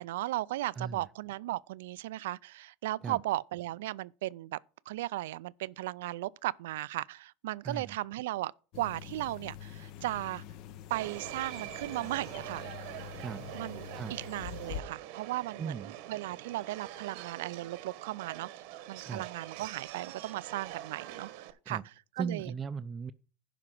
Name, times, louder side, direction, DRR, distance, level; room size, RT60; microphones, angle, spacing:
voice 1, 0.0-4.6 4.9-10.4 10.9-12.8 13.5-18.5 18.9-22.5, right 16 dB, 90° right, 0.3 m, -36 dB
voice 2, 7.6-8.0 13.2-13.5 14.0-14.2 15.6-15.9 19.1-19.3 21.7-21.8 22.2-23.1, right 6 dB, 25° right, 0.4 m, -37 dB
sound 1, 8.7-14.8, left 9 dB, 55° left, 0.7 m, -45 dB
Subway metro underground, 10.9-21.5, right 13 dB, 70° right, 1.0 m, -45 dB
11.0 x 5.0 x 5.9 m
supercardioid pair, 135°, 0 cm